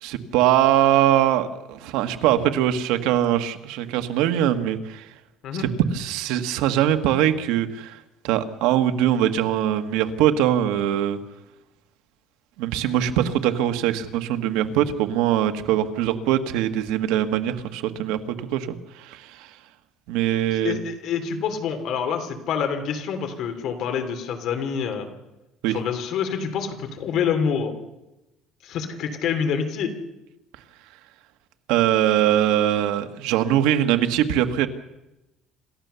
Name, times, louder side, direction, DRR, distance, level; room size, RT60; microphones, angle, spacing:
voice 1, 0.0-5.1 5.6-11.2 12.6-19.6 20.1-20.8 25.6-25.8 31.7-34.7, right 11 dB, 85° right, 8 dB, 1.5 m, -22 dB
voice 2, 20.5-25.1 25.7-27.7 28.6-29.9, left 7 dB, 50° left, 6 dB, 3.1 m, -27 dB
27.5 x 14.0 x 6.9 m, 0.96 s
cardioid pair, 165°, 0 cm